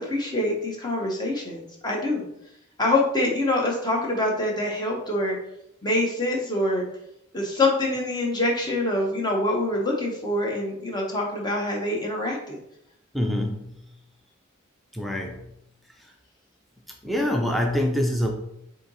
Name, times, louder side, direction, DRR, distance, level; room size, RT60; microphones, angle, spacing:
voice 1, 0.0-2.2 2.8-5.4 5.8-6.9 7.3-12.6, left 1 dB, 20° left, -1 dB, 0.9 m, -25 dB
voice 2, 13.1-13.8 14.9-15.5 16.0-16.1 17.0-18.3, left 1 dB, ahead, 1 dB, 0.5 m, -25 dB
4.4 x 2.8 x 3.9 m, 0.79 s
head